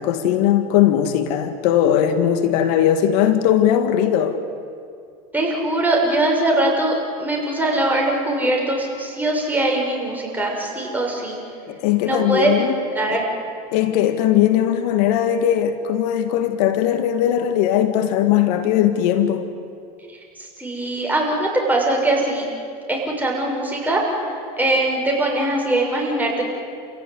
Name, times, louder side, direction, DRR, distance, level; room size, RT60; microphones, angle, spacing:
voice 1, 0.0-4.4 11.7-12.8 13.1-13.2 13.7-19.4, left 10 dB, 70° left, 1.8 m, -19 dB
voice 2, 5.3-11.4 12.0-12.5 12.9-13.2 20.1-22.5 22.9-26.4, right 1 dB, 10° right, 6.6 m, -22 dB
29.0 x 16.5 x 9.6 m
supercardioid pair, 105°, 21 cm